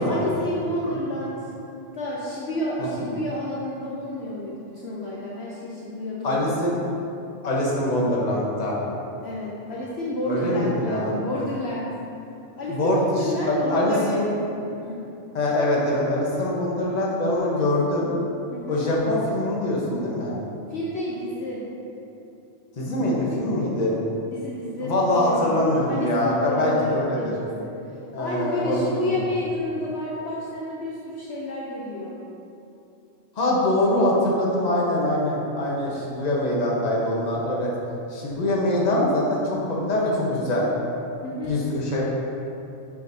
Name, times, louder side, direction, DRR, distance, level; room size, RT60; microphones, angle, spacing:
voice 1, 0.0-1.5 1.9-6.5 9.2-11.9 12.6-14.3 14.8-15.0 18.5-18.8 20.7-21.7 24.3-25.6 25.9-27.7 28.2-32.2 41.2-41.5, left 1 dB, 60° left, -5 dB, 0.9 m, -30 dB
voice 2, 6.2-6.8 7.4-8.7 10.3-11.1 12.7-14.3 15.3-18.1 18.7-20.3 22.8-24.0 24.8-27.3 28.1-29.1 33.4-37.7 38.1-40.7 41.4-42.0, left 1 dB, 35° left, -5 dB, 1.1 m, -23 dB
7.7 x 5.0 x 2.7 m, 2.8 s
omnidirectional pair, 1.3 m